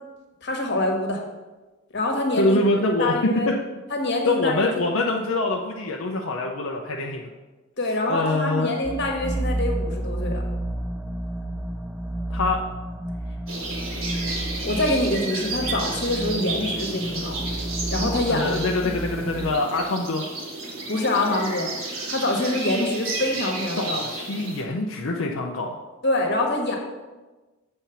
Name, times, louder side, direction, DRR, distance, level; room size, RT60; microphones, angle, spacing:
voice 1, 0.4-1.2 1.9-2.6 3.0-3.5 3.9-4.7 7.8-10.4 14.6-17.4 17.9-18.6 18.8-18.9 20.9-24.0 26.0-26.8, left 1 dB, 55° left, 2 dB, 1.4 m, -25 dB
voice 2, 2.4-3.1 3.5-3.6 4.2-7.2 8.1-8.7 12.3-12.6 18.3-20.2 23.7-25.8, left 2 dB, 85° left, 0 dB, 0.7 m, -25 dB
sound 1, 8.8-19.5, right 1 dB, 5° right, 0.4 m, -31 dB
sound 2, 13.5-24.6, right 2 dB, 80° right, 2.3 m, -32 dB
7.4 x 4.4 x 6.9 m, 1.2 s
head